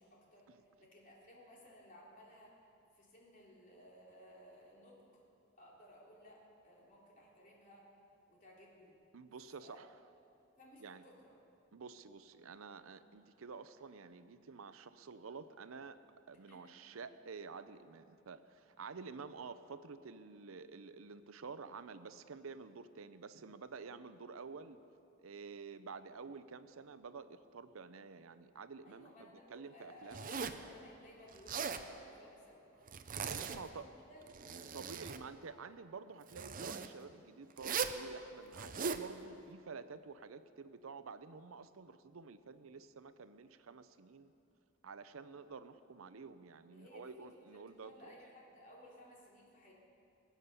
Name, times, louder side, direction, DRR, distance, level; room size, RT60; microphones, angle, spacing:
voice 1, 0.0-2.6 2.9-5.2 5.6-7.9 8.3-9.0 9.6-9.8 10.6-11.3 16.5-16.7 28.8-32.8 33.4-34.2 35.2-35.8 46.7-49.7, left 1 dB, 40° left, -4 dB, 3.3 m, -59 dB
voice 2, 9.1-10.0 10.8-11.0 11.7-16.0 16.3-24.8 25.2-30.3 33.2-33.9 34.7-44.3 44.8-48.2, right 5 dB, 80° right, 12 dB, 0.6 m, -50 dB
Zipper (clothing), 30.1-30.7 31.3-31.9 32.9-33.8 34.2-35.2 36.3-36.9 37.6-38.0 38.5-39.1, right 6 dB, 45° right, 0.7 m, -39 dB
22.0 x 8.6 x 6.8 m, 2.7 s
head